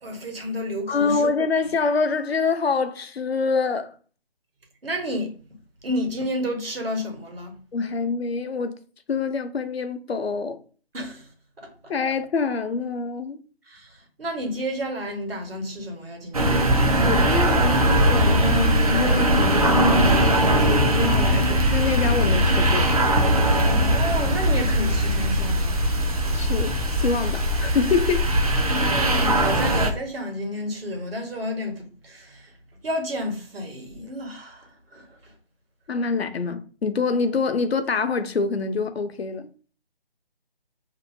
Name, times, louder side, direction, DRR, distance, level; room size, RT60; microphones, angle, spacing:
voice 1, 0.0-1.3 4.8-5.3 5.8-7.6 10.9-11.3 11.6-11.9 13.7-16.6 23.7-25.8 28.6-32.5 32.8-35.3, equal, 70° right, 1.1 m, -31 dB
voice 2, 0.9-3.9 7.7-8.8 9.1-10.6 11.9-13.4 17.0-22.9 26.3-28.3 35.9-39.5, left 4 dB, 80° left, 0.6 m, -26 dB
sound 1, 16.3-29.9, right 1 dB, 40° right, 0.5 m, -20 dB
2.7 x 2.2 x 2.6 m
figure-of-eight pair, 155°, 31 cm